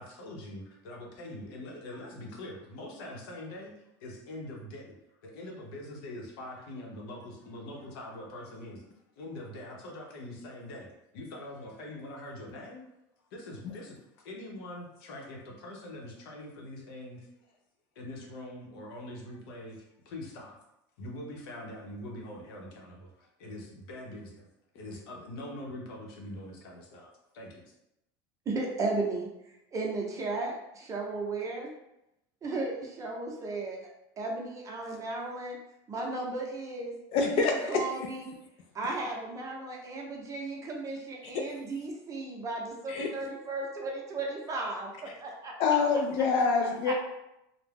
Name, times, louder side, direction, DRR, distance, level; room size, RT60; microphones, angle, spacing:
voice 1, 0.0-3.7 4.0-5.0 5.2-8.9 9.2-10.9 11.1-12.9 13.3-17.6 17.9-20.6 21.0-24.5 24.7-27.6, left 1 dB, 80° left, -1 dB, 0.8 m, -43 dB
voice 2, 28.5-29.3 29.7-31.7 32.4-33.8 34.2-35.6 35.9-36.9 37.3-37.4 37.7-38.3 38.7-45.8 46.2-46.3 46.8-46.9, right 3 dB, 25° right, -1 dB, 0.6 m, -35 dB
voice 3, 37.1-37.9 42.9-43.1 45.6-46.9, left 4 dB, 55° left, 3 dB, 0.4 m, -26 dB
2.3 x 2.1 x 3.3 m, 0.85 s
supercardioid pair, 125°, 12 cm